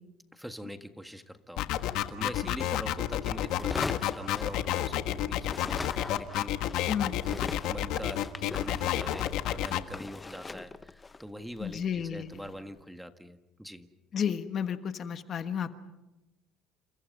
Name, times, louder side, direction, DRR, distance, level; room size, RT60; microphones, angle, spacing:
voice 1, 0.3-6.6 7.0-13.9, equal, ahead, 8 dB, 1.6 m, -43 dB
sound 1, 1.6-9.8, left 13 dB, 70° left, 1.4 m, -30 dB
sound 2, 3.5-5.1 5.4-12.6, left 3 dB, 20° left, 0.8 m, -41 dB
voice 2, 11.6-12.4 14.1-15.7, left 8 dB, 40° left, 9 dB, 1.3 m, -32 dB
29.5 x 28.0 x 5.4 m, 1.0 s
cardioid pair, 120°, 0 cm